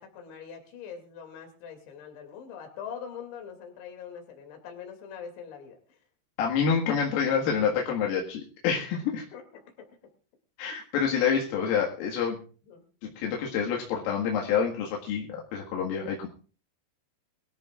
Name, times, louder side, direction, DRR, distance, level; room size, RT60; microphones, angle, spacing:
voice 1, 0.0-6.0 9.3-9.9 12.6-12.8, left 7 dB, 65° left, 4 dB, 4.8 m, -43 dB
voice 2, 6.4-9.2 10.6-12.4 13.0-15.3 15.5-16.3, left 7 dB, 80° left, -1 dB, 4.4 m, -27 dB
22.5 x 14.5 x 2.5 m, 0.39 s
omnidirectional pair, 5.9 m